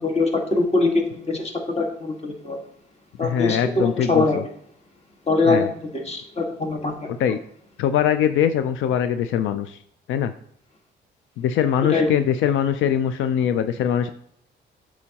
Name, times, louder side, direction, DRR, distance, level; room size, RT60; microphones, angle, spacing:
voice 1, 0.0-1.5 1.8-2.6 3.2-4.4 5.3-7.1 11.9-12.1, left 3 dB, 30° left, 2 dB, 1.7 m, -23 dB
voice 2, 3.2-4.4 5.4-5.7 7.1-7.4 7.8-9.8 10.1-10.3 11.4-14.1, left 9 dB, 80° left, 10 dB, 0.4 m, -22 dB
8.4 x 6.0 x 2.9 m, 0.69 s
cardioid pair, 90°, 20 cm